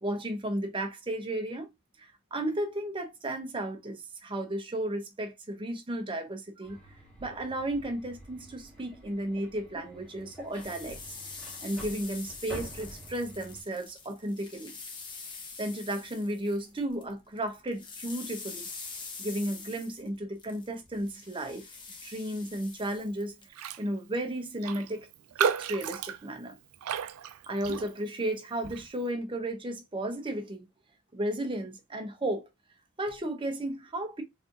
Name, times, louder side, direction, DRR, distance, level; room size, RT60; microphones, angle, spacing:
voice 1, 0.0-1.7 2.0-6.8 7.2-11.2 11.6-14.7 15.6-18.7 19.2-21.7 22.0-23.3 23.8-25.1 25.4-26.6 27.5-30.7 31.1-32.5 33.0-34.2, right 1 dB, 25° right, 0.7 m, -34 dB
sound 1, 6.6-13.6, equal, 5° left, 1.6 m, -47 dB
sound 2, 10.3-17.1 17.4-23.5, left 4 dB, 20° left, 0.7 m, -45 dB
Raindrop, 23.5-23.9 24.1-24.2 24.6-28.2 28.6-28.9, right 8 dB, 75° right, 0.4 m, -33 dB
4.2 x 2.6 x 2.4 m
head